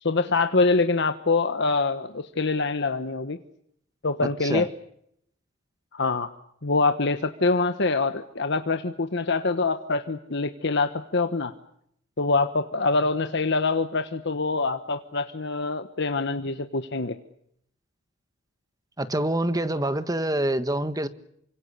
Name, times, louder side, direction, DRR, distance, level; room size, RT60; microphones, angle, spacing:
voice 1, 0.0-3.4 4.0-4.7 5.9-6.3 6.6-11.5 12.2-17.2, left 3 dB, 60° left, 8 dB, 1.3 m, -25 dB
voice 2, 4.2-4.7 19.0-21.1, right 1 dB, 20° right, 11 dB, 1.5 m, -26 dB
28.5 x 25.0 x 6.9 m, 0.73 s
head